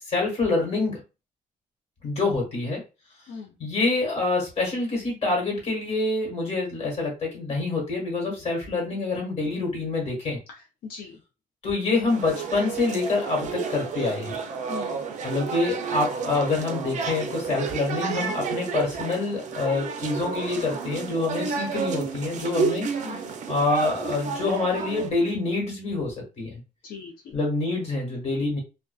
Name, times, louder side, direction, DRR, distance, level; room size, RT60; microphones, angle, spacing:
voice 1, 0.1-1.0 2.0-2.8 3.6-10.4 11.6-14.3 15.2-23.2 23.5-26.6 27.3-28.6, left 3 dB, 45° left, 0 dB, 1.4 m, -26 dB
voice 2, 10.8-11.2 14.7-15.1 23.0-23.3 26.8-27.4, left 5 dB, 85° left, -1 dB, 0.6 m, -39 dB
sound 1, 12.1-25.1, right 5 dB, 55° right, 0.4 m, -31 dB
2.4 x 2.2 x 2.3 m, 0.29 s
cardioid pair, 130°, 15 cm